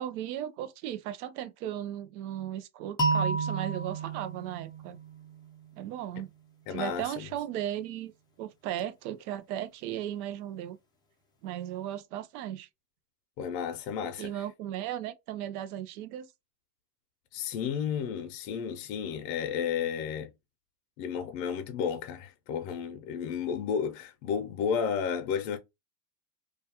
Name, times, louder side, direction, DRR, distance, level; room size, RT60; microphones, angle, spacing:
voice 1, 0.0-5.0 5.8-6.3 6.7-8.1 8.4-10.8 11.4-12.7 14.2-16.3, right 11 dB, 65° right, 0.6 m, -36 dB
sound 1, 3.0-5.9, right 3 dB, 10° left, 0.4 m, -31 dB
voice 2, 6.7-7.3 13.4-14.4 17.3-20.3 21.0-25.6, left 7 dB, 60° left, 0.6 m, -32 dB
2.3 x 2.2 x 2.8 m
supercardioid pair, 120°, 49 cm